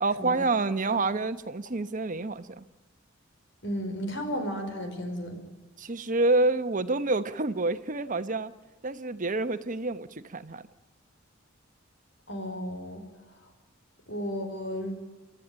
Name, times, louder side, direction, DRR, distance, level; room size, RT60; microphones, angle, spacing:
voice 1, 0.0-2.6 5.8-8.5 8.8-10.6, right 2 dB, 40° right, 1.1 m, -28 dB
voice 2, 3.6-5.4 12.3-13.1 14.1-15.0, equal, 65° left, 5.0 m, -33 dB
29.5 x 13.5 x 8.8 m
head